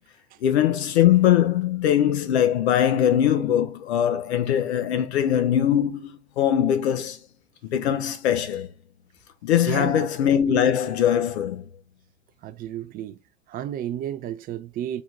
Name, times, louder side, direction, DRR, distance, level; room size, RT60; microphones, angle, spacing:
voice 1, 0.4-7.2 7.7-8.7 9.4-11.6, left 10 dB, 70° left, 0.8 m, -21 dB
voice 2, 9.7-10.1 10.4-10.6 12.4-13.2 13.5-15.0, right 10 dB, 25° right, 0.4 m, -32 dB
3.8 x 2.4 x 4.5 m
hypercardioid pair, 85°, 34 cm